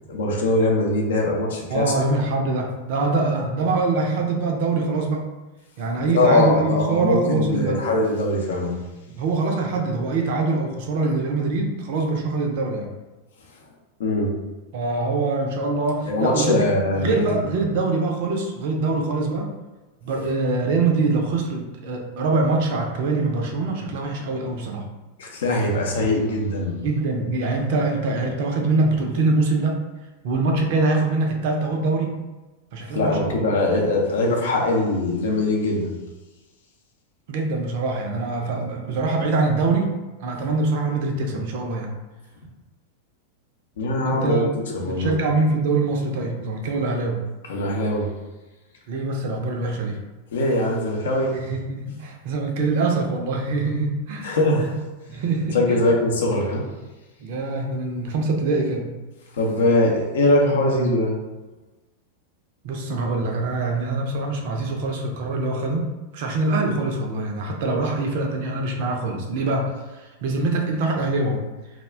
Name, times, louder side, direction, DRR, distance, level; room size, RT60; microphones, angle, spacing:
voice 1, 0.1-1.9 6.1-8.8 14.0-14.3 16.1-17.4 25.2-26.7 32.9-36.0 43.8-44.5 44.7-45.1 47.5-48.1 50.3-51.3 54.2-54.7 55.5-56.6 59.4-61.1, left 2 dB, 60° left, -1 dB, 0.5 m, -21 dB
voice 2, 1.7-5.2 5.8-7.8 9.1-12.9 14.7-16.6 16.9-19.5 20.0-24.9 26.8-29.8 30.2-32.2 32.7-33.4 37.3-41.9 44.0-44.5 44.9-47.2 48.9-50.0 51.3-54.4 54.6-54.7 55.1-55.8 57.2-58.9 60.4-60.8 62.6-71.4, right 3 dB, 50° right, 2 dB, 0.4 m, -24 dB
2.3 x 2.1 x 3.3 m, 1.1 s
figure-of-eight pair, 90°, 0 cm